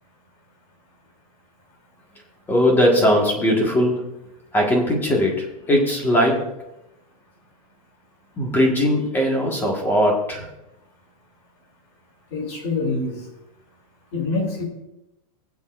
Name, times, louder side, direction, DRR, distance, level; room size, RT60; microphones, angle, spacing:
voice 1, 2.5-4.1 4.5-6.5 8.4-10.5, equal, 10° left, 0 dB, 1.7 m, -19 dB
voice 2, 12.3-13.2 14.1-14.6, left 3 dB, 45° left, 2 dB, 3.2 m, -25 dB
20.0 x 8.2 x 2.6 m, 0.90 s
supercardioid pair, 165°, 19 cm